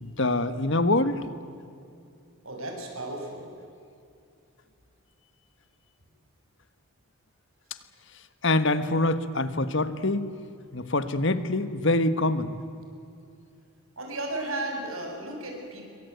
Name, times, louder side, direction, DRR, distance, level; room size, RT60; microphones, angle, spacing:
voice 1, 0.0-1.2 8.4-10.3 10.7-12.5, left 2 dB, 55° left, 13 dB, 1.4 m, -25 dB
voice 2, 2.4-3.5 14.0-15.9, right 2 dB, 70° right, 2 dB, 6.6 m, -34 dB
27.5 x 23.0 x 9.3 m, 2.5 s
head